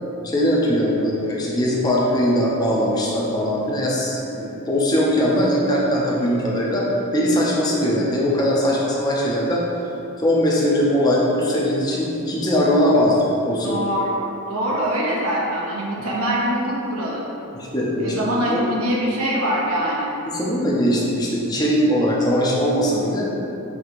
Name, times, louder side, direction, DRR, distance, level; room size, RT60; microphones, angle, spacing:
voice 1, 0.2-6.9 7.1-9.6 10.2-13.8 17.5-18.1 18.5-18.7 20.3-23.3, equal, 20° left, -4 dB, 0.6 m, -20 dB
voice 2, 13.6-14.2 14.5-17.2 18.0-20.1, equal, 85° right, -4 dB, 0.8 m, -23 dB
5.7 x 2.8 x 2.5 m, 2.9 s
head